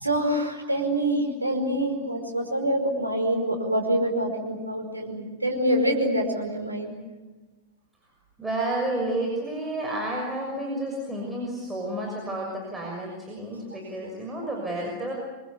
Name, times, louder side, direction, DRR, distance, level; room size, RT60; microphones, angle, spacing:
voice 1, 0.0-6.9, right 1 dB, 85° right, 2 dB, 5.4 m, -26 dB
voice 2, 8.4-15.1, right 1 dB, 10° right, -1 dB, 6.4 m, -30 dB
27.0 x 24.0 x 8.4 m, 1.2 s
figure-of-eight pair, 90°, 0 cm